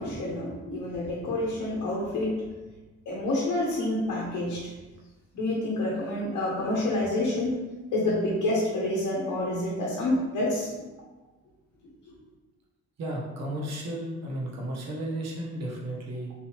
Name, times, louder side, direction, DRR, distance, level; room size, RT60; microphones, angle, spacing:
voice 1, 0.0-2.4 3.1-4.7 5.3-7.5 7.9-10.7, left 1 dB, 75° left, -5 dB, 1.0 m, -28 dB
voice 2, 13.0-16.3, right 1 dB, 60° right, -2 dB, 1.1 m, -33 dB
3.8 x 2.8 x 2.9 m, 1.2 s
cardioid pair, 90°, 30 cm